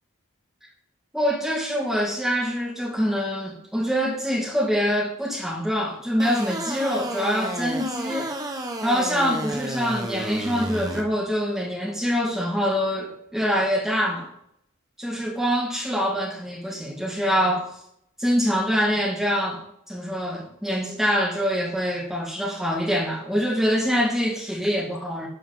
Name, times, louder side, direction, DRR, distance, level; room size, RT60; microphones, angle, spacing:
voice 1, 1.1-8.3 8.8-14.3 15.0-17.7 18.2-25.3, equal, ahead, -3 dB, 2.2 m, -25 dB
sound 1, 6.2-11.0, right 1 dB, 15° right, 0.9 m, -32 dB
11.5 x 4.7 x 5.6 m, 0.73 s
head